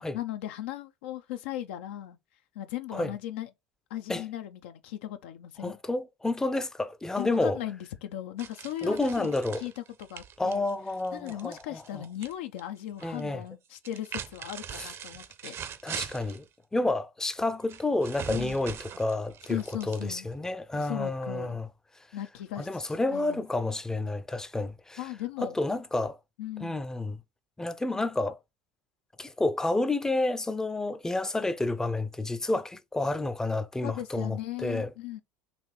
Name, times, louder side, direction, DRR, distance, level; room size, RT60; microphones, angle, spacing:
voice 1, 0.0-2.2 2.5-3.5 3.9-5.7 7.2-10.6 11.1-15.5 18.3-18.6 19.5-20.3 20.7-21.6 22.1-23.4 25.0-25.6 26.4-26.8 33.8-35.2, left 13 dB, 80° left, 0.5 m, -37 dB
voice 2, 5.6-7.6 8.8-9.6 10.4-12.0 13.0-13.4 14.8-14.9 15.8-16.4 16.7-19.6 19.9-21.7 22.6-25.0 25.4-26.2 26.6-27.2 27.6-28.4 29.2-34.9, left 2 dB, 10° left, 0.4 m, -30 dB
sound 1, 8.4-12.3 12.6-13.2 13.8-16.4 17.7-20.4, right 8 dB, 40° right, 0.6 m, -41 dB
4.1 x 2.7 x 3.1 m
hypercardioid pair, 95°, 6 cm